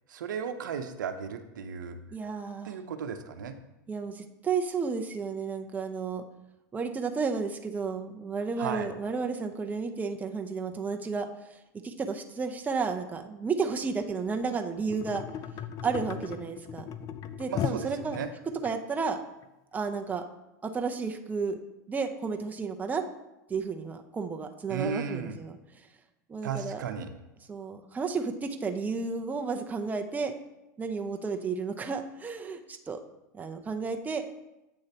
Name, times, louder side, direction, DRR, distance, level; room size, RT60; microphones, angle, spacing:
voice 1, 0.1-2.0 2.6-3.6 8.6-8.9 17.5-18.3 24.7-25.4 26.4-27.1, right 6 dB, 90° right, 8 dB, 0.7 m, -35 dB
voice 2, 2.1-2.7 3.9-6.2 6.7-11.3 11.8-15.2 15.8-16.9 17.4-18.2 18.6-19.2 19.7-20.2 20.6-21.6 21.9-23.0 23.5-25.6 26.3-26.8 27.5-30.3 30.8-33.0 33.3-34.3, right 5 dB, 15° right, 5 dB, 0.7 m, -32 dB
sound 1, 14.9-18.7 19.4-19.5, left 8 dB, 35° left, 0.5 m, -37 dB
8.3 x 6.5 x 2.9 m, 0.93 s
hypercardioid pair, 115°, 10 cm